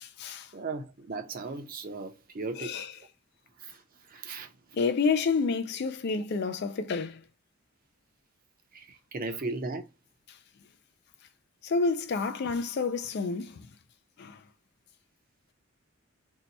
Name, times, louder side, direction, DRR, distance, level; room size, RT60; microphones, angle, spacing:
voice 1, 0.0-0.5 2.6-2.9 4.7-7.2 11.6-13.7 14.2-14.4, left 4 dB, 50° left, 0.4 m, -29 dB
voice 2, 0.5-2.8 3.6-4.5 8.7-9.9, right 3 dB, 45° right, 0.6 m, -37 dB
2.7 x 2.2 x 3.9 m
head